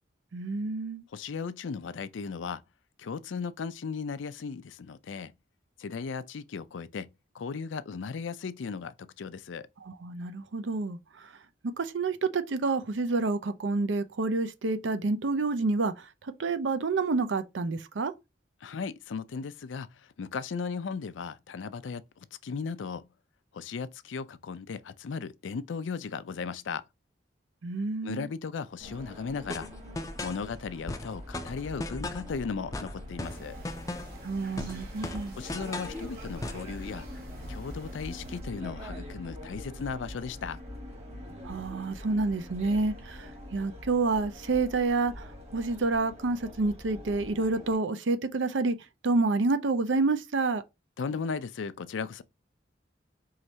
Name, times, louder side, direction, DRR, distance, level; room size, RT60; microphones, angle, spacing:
voice 1, 0.3-1.0 9.8-11.3 11.8-18.1 27.6-28.3 34.2-35.4 41.4-48.8 49.0-50.6, right 3 dB, 85° right, 0.6 m, -29 dB
voice 2, 1.1-2.6 3.0-5.3 5.8-7.1 7.3-9.7 18.6-23.1 23.5-26.8 28.0-29.7 30.2-33.6 35.4-37.1 37.5-40.6 51.0-52.2, left 5 dB, 90° left, 0.4 m, -36 dB
sound 1, 28.8-47.8, left 1 dB, 35° right, 1.4 m, -43 dB
sound 2, 29.5-30.4 30.9-32.3 32.7-34.2 34.6-36.0 36.4-36.7, left 2 dB, 20° left, 0.4 m, -37 dB
sound 3, 33.2-38.4, right 1 dB, 55° right, 2.1 m, -49 dB
4.8 x 3.1 x 2.8 m
head